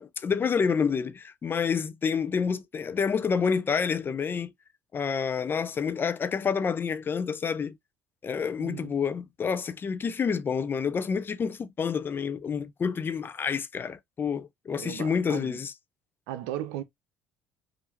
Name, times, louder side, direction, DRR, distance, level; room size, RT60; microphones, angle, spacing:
voice 1, 0.0-4.5 4.9-7.8 8.2-15.7, left 6 dB, 35° left, 0.6 m, -28 dB
voice 2, 8.6-8.9 14.7-15.6 16.3-16.8, right 12 dB, 75° right, 0.6 m, -36 dB
5.4 x 2.7 x 2.8 m
hypercardioid pair, 60°, 6 cm